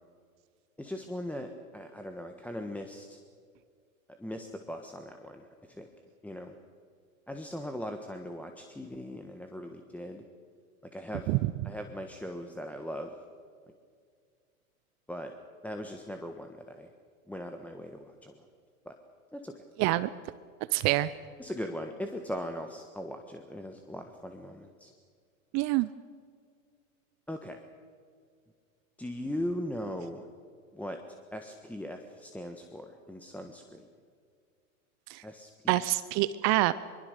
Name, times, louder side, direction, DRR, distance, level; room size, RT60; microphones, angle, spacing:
voice 1, 0.8-3.2 4.2-5.9 6.2-6.5 7.3-10.2 10.9-11.3 11.6-13.2 15.1-15.3 15.6-16.9 17.3-18.4 18.8-19.0 19.3-19.6 21.4-24.9 27.3-27.6 29.0-30.3 30.7-31.0 31.3-33.9 35.2-35.8, equal, 5° left, 3 dB, 1.4 m, -39 dB
voice 2, 19.8-20.1 20.7-21.1 25.5-25.9 35.1-35.2 35.7-36.7, right 18 dB, 40° right, 15 dB, 0.7 m, -26 dB
24.0 x 23.0 x 6.7 m, 2.1 s
hypercardioid pair, 110°, 42 cm